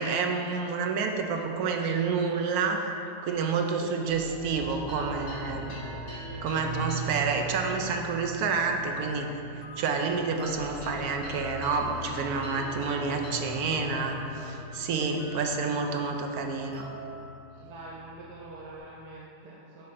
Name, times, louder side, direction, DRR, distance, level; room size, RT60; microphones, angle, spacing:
voice 1, 0.0-2.8 3.2-5.7 6.4-9.3 9.8-16.9, right 4 dB, 70° right, 4 dB, 1.1 m, -29 dB
sound 1, 4.1-18.8, right 1 dB, 75° left, 2.2 m, -40 dB
voice 2, 4.8-5.8 6.2-6.4 14.9-15.4 15.7-16.0 17.6-19.9, right 2 dB, 90° right, -5 dB, 1.3 m, -45 dB
8.5 x 3.2 x 5.9 m, 2.7 s
omnidirectional pair, 1.7 m